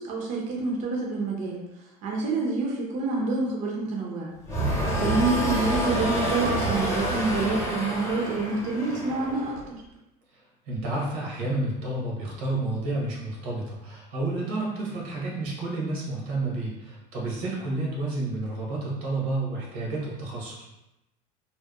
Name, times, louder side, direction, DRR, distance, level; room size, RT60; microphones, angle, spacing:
voice 1, 0.0-1.6 2.0-4.3 5.0-9.6, right 3 dB, 45° right, -1 dB, 0.5 m, -27 dB
sound 1, 4.5-9.6, equal, 15° left, 0.8 m, -28 dB
voice 2, 10.3-20.6, right 2 dB, 85° right, -3 dB, 0.9 m, -30 dB
2.7 x 2.1 x 2.2 m, 0.94 s
supercardioid pair, 115°, 18 cm